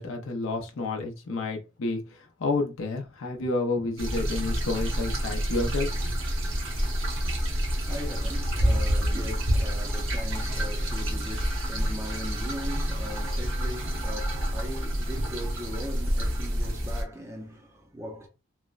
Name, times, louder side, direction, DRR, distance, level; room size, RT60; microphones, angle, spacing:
voice 1, 0.0-5.9, left 3 dB, 70° left, 0.5 m, -30 dB
sound 1, 4.0-17.0, equal, 70° right, 0.9 m, -28 dB
voice 2, 7.3-18.3, equal, 15° right, 0.4 m, -40 dB
3.1 x 2.0 x 2.3 m
head